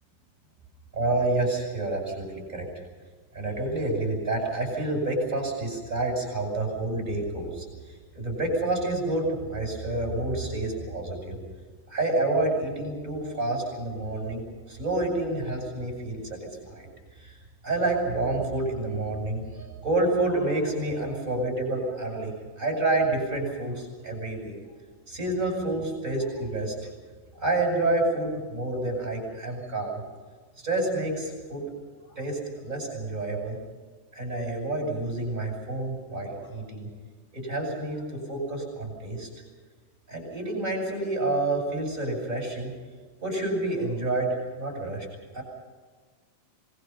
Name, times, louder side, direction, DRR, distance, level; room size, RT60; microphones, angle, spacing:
voice 1, 0.9-2.7 3.3-11.4 11.9-17.4 17.6-24.5 25.1-26.7 27.3-30.0 30.6-31.7 32.1-33.6 34.1-36.9 37.3-39.3 40.1-42.7 43.2-45.1 45.3-45.4, right 2 dB, 20° right, 0 dB, 8.0 m, -29 dB
26.5 x 22.5 x 5.6 m, 1.4 s
omnidirectional pair, 4.0 m